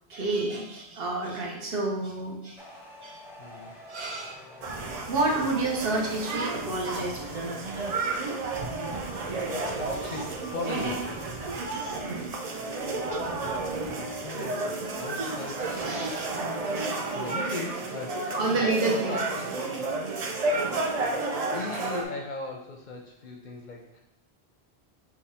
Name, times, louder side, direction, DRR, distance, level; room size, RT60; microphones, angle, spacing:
voice 1, 0.1-2.6 3.0-3.2 3.9-4.4 5.1-7.4 12.1-12.2 15.8-16.2 17.4-17.7 18.3-19.2 19.4-19.5, right 2 dB, 65° right, -1 dB, 1.0 m, -29 dB
sound 1, 2.6-12.2, left 1 dB, 5° right, 0.7 m, -48 dB
voice 2, 3.4-3.7 9.3-11.3 13.6-16.3 17.0-19.6 21.1-24.0, left 3 dB, 55° left, 0 dB, 0.6 m, -39 dB
sound 2, 4.6-22.0, right 3 dB, 50° right, 0.5 m, -31 dB
5.3 x 2.3 x 4.2 m, 0.83 s
omnidirectional pair, 1.1 m